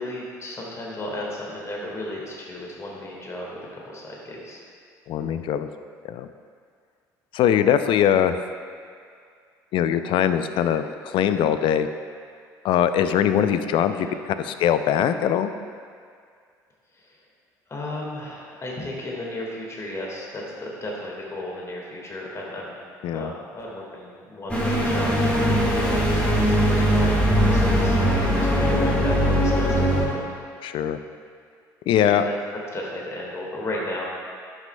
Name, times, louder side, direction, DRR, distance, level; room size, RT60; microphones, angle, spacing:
voice 1, 0.0-4.6 14.0-14.2 16.9-17.2 17.7-22.7 23.1-30.3 32.0-32.3 32.7-34.0, left 1 dB, 30° left, -3 dB, 1.7 m, -34 dB
voice 2, 5.1-5.7 6.0-6.3 7.3-8.4 9.7-11.9 12.6-15.5 23.0-23.3 30.6-31.0 31.9-32.3, left 9 dB, 60° left, 10 dB, 0.4 m, -22 dB
sound 1, 24.5-30.1, equal, 15° left, 1.8 m, -20 dB
11.0 x 6.2 x 2.2 m, 2.2 s
hypercardioid pair, 65°, 10 cm